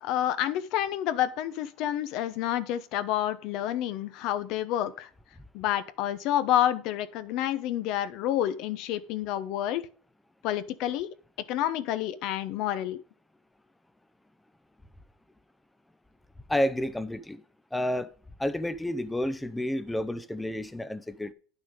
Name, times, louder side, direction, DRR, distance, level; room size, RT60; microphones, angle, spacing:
voice 1, 0.0-5.1 5.5-9.9 10.4-11.1 11.5-13.0, left 12 dB, 65° left, 0.8 m, -29 dB
voice 2, 16.5-17.4 17.7-18.1 18.4-21.3, left 1 dB, 5° left, 0.6 m, -30 dB
9.7 x 6.1 x 5.1 m
cardioid pair, 135°, 0 cm